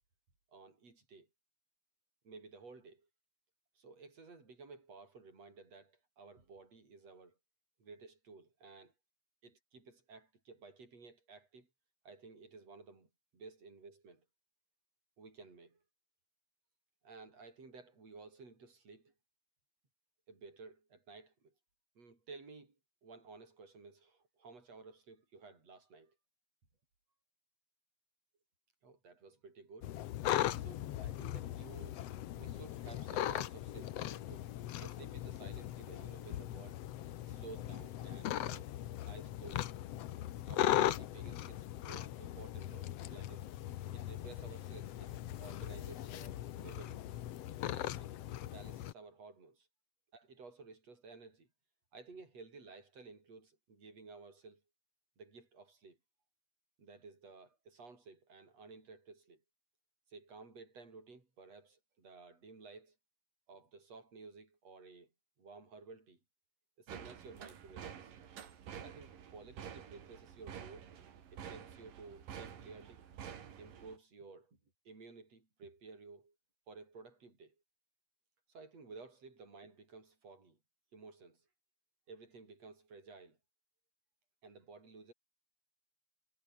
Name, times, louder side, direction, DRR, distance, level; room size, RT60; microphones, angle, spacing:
voice 1, 0.5-1.3 2.2-3.1 3.7-7.4 7.8-8.9 9.4-11.7 12.0-14.3 15.2-15.8 17.0-19.1 20.3-21.5 22.0-22.8 23.0-26.2 28.8-30.0 30.6-32.1 32.3-36.8 37.3-38.8 39.1-39.7 40.4-43.5 43.9-47.1 47.7-48.1 48.4-49.7 50.1-51.5 51.9-54.6 55.2-56.0 56.8-59.4 60.1-63.0 63.5-65.1 65.4-66.2 66.8-68.1 68.8-71.0 71.3-73.0 73.6-74.6 74.8-76.4 76.7-77.5 78.5-80.6 80.9-81.4 82.1-83.4 84.4-85.1, right 4 dB, 50° right, 8.1 m, -54 dB
sound 1, 29.8-48.9, left 13 dB, 65° left, 1.7 m, -39 dB
sound 2, 66.9-74.0, right 8 dB, 85° right, 4.4 m, -49 dB
omnidirectional pair, 3.8 m